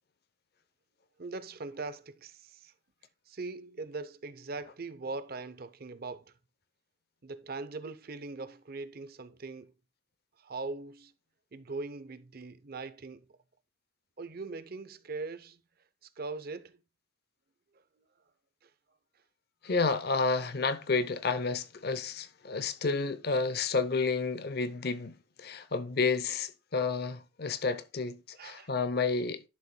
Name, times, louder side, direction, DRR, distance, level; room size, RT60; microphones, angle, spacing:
voice 1, 1.2-2.7 3.3-6.2 7.2-9.7 10.4-11.1 11.5-13.2 14.2-15.6 16.2-16.8 28.4-28.7, right 3 dB, 45° right, 0.6 m, -41 dB
voice 2, 19.6-29.4, left 4 dB, 50° left, 0.7 m, -30 dB
11.0 x 6.7 x 2.2 m
head